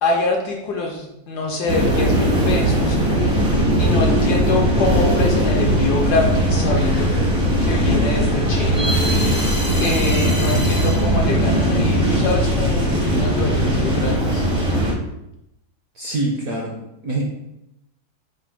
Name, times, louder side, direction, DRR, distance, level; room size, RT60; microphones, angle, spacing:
voice 1, 0.0-3.0 3.8-7.1 7.6-8.9 9.8-14.4, left 3 dB, 70° left, 1 dB, 1.0 m, -25 dB
sound 1, 1.7-14.9, equal, 35° right, 0.5 m, -19 dB
voice 2, 15.9-17.2, right 2 dB, 65° right, -1 dB, 0.8 m, -25 dB
5.0 x 2.1 x 4.4 m, 0.83 s
omnidirectional pair, 2.1 m